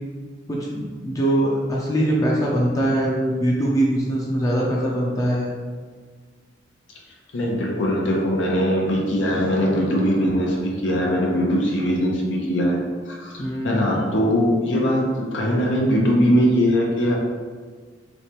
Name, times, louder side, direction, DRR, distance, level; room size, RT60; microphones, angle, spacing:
voice 1, 0.5-5.5 13.4-14.0, right 1 dB, 20° left, -4 dB, 0.4 m, -22 dB
voice 2, 7.3-12.8 13.1-15.0 15.3-17.2, equal, 80° left, -1 dB, 0.6 m, -21 dB
3.2 x 3.1 x 2.9 m, 1.5 s
head